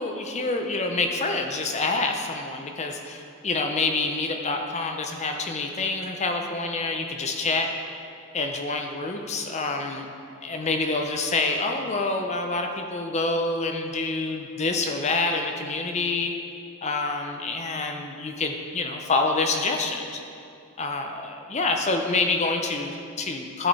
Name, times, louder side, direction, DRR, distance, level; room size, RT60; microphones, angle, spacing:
voice 1, 0.0-7.7 8.3-10.1 10.4-16.3 16.8-20.2 20.8-23.7, left 3 dB, 30° left, 4 dB, 0.6 m, -27 dB
12.0 x 5.0 x 4.1 m, 2.5 s
head